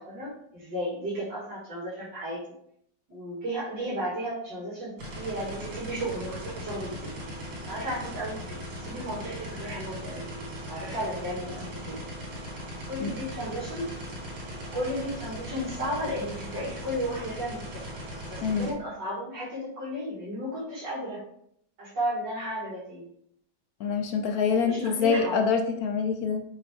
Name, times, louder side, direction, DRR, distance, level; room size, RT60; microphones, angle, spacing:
voice 1, 0.0-2.4 3.1-7.1 7.7-10.4 10.7-12.0 12.9-13.9 14.5-17.8 18.3-21.2 21.8-23.1 24.5-25.4, equal, 65° right, -8 dB, 2.9 m, -34 dB
sound 1, 5.0-18.7, equal, 85° right, 2.5 m, -39 dB
voice 2, 23.8-26.4, left 5 dB, 65° left, 6 dB, 1.0 m, -25 dB
6.9 x 4.7 x 3.6 m, 0.68 s
omnidirectional pair, 2.0 m